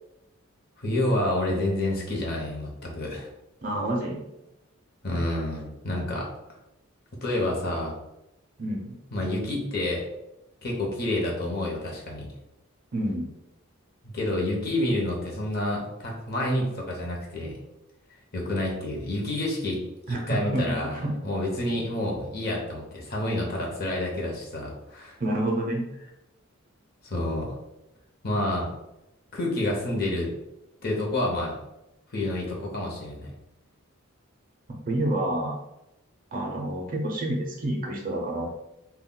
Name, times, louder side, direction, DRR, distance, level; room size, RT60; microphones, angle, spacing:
voice 1, 0.8-3.3 5.0-6.3 7.2-7.9 9.1-10.1 10.6-12.3 14.0-17.5 18.3-19.8 20.1-25.2 27.0-27.6 28.2-28.7 29.3-30.3 30.8-31.6 32.1-33.3, left 1 dB, 45° left, -2 dB, 0.7 m, -28 dB
voice 2, 3.6-4.2 8.6-8.9 12.9-13.3 20.1-21.1 25.2-25.8 34.9-35.6 36.3-38.5, right 1 dB, 40° right, 0 dB, 0.4 m, -28 dB
2.2 x 2.2 x 3.6 m, 0.89 s
head